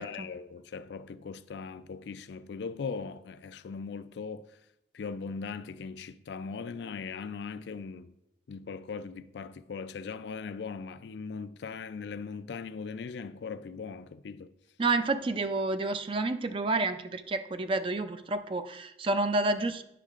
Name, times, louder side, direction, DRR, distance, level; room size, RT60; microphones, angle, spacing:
voice 1, 0.0-4.5 4.9-8.1 8.5-14.5, left 5 dB, 70° left, 0.4 m, -39 dB
voice 2, 14.8-19.8, right 2 dB, 30° right, 0.4 m, -29 dB
10.0 x 6.4 x 2.4 m
head